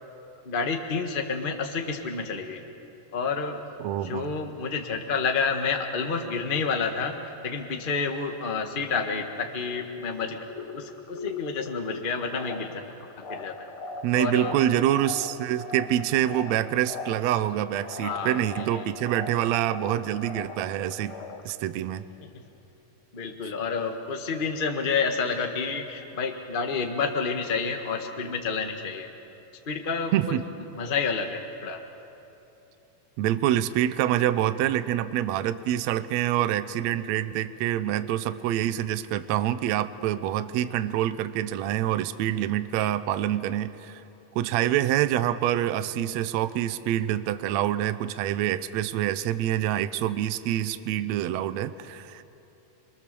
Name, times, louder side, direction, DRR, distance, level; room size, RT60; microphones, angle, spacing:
voice 1, 0.4-2.6 3.1-3.6 4.0-10.5 10.7-12.8 13.2-13.5 14.1-14.5 18.0-18.8 23.1-29.1 29.7-30.4 30.7-31.8, left 5 dB, 75° left, 4 dB, 0.4 m, -29 dB
voice 2, 3.8-4.3 14.0-21.1 21.4-22.0 30.1-30.4 33.2-44.0 44.3-52.2, right 12 dB, 75° right, 12 dB, 1.7 m, -26 dB
sound 1, 10.3-21.5, left 3 dB, 50° left, 1.9 m, -40 dB
28.5 x 23.0 x 6.9 m, 2.9 s
omnidirectional pair, 3.9 m